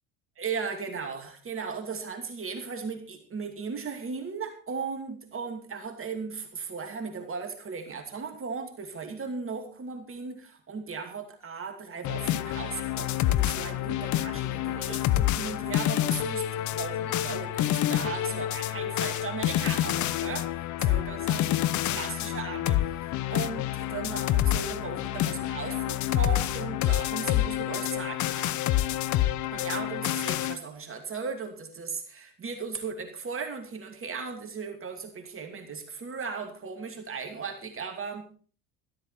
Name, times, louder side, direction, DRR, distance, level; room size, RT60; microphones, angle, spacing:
voice 1, 0.4-21.5 21.8-23.0 23.3-28.8 29.5-38.4, right 5 dB, 30° right, 5 dB, 2.7 m, -37 dB
sound 1, 12.0-30.6, left 13 dB, 45° left, 0.8 m, -28 dB
13.0 x 12.5 x 4.3 m, 0.39 s
hypercardioid pair, 75°, 42 cm